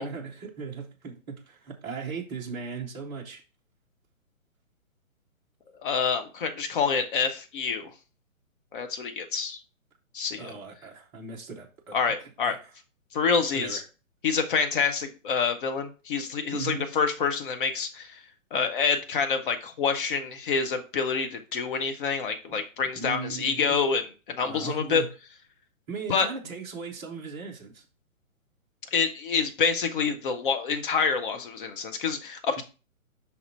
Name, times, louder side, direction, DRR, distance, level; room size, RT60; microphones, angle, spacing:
voice 1, 0.0-3.4 10.4-11.9 12.2-12.7 13.5-13.8 16.5-16.8 22.5-22.6 22.9-23.8 24.4-25.1 25.9-27.9 32.6-32.7, right 5 dB, 10° right, -2 dB, 0.6 m, -38 dB
voice 2, 5.8-7.9 8.7-9.6 10.1-10.5 11.9-12.5 13.1-13.8 14.2-18.2 18.5-24.0 24.3-25.0 26.1-26.3 28.9-32.6, left 5 dB, 40° left, 7 dB, 1.0 m, -27 dB
5.8 x 3.9 x 4.2 m, 0.33 s
figure-of-eight pair, 135°, 41 cm